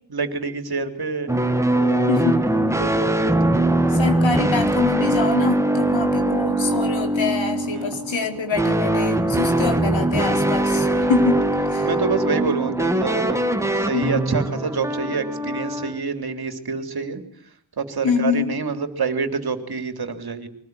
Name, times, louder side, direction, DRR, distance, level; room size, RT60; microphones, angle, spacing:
voice 1, 0.1-1.3 1.7-2.1 2.6-3.7 7.6-8.1 9.3-9.5 10.9-11.1 11.8-17.2 17.8-20.5, right 4 dB, 55° right, 8 dB, 3.5 m, -27 dB
sound 1, 1.3-16.0, right 1 dB, 5° right, 2.0 m, -21 dB
voice 2, 2.1-2.4 3.9-11.9 13.9-14.2 18.0-18.5, left 5 dB, 85° left, 6 dB, 4.2 m, -25 dB
24.0 x 19.5 x 9.6 m, 0.63 s
wide cardioid pair, 140°, 45 cm